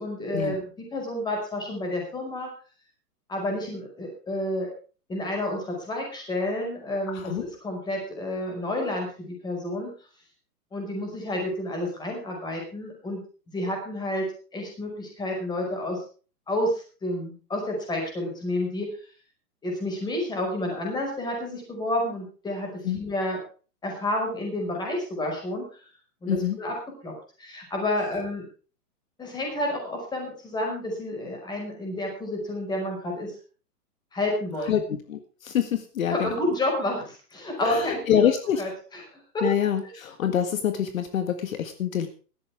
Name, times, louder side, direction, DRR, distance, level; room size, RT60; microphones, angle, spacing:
voice 1, 0.0-2.5 3.3-4.7 5.1-9.9 10.7-13.2 13.5-14.2 14.5-16.0 16.5-18.9 19.6-23.4 23.8-25.8 26.2-26.7 27.0-27.1 27.4-28.4 29.2-33.3 34.1-34.8 36.1-38.1 38.6-38.7 39.3-39.4, left 1 dB, 10° left, 1 dB, 5.2 m, -30 dB
voice 2, 7.1-7.4 22.8-23.0 26.3-26.6 34.7-34.8 35.1-36.3 37.6-38.6 39.4-42.1, left 9 dB, 55° left, 8 dB, 1.9 m, -26 dB
18.0 x 13.5 x 3.5 m, 0.37 s
hypercardioid pair, 160°, 48 cm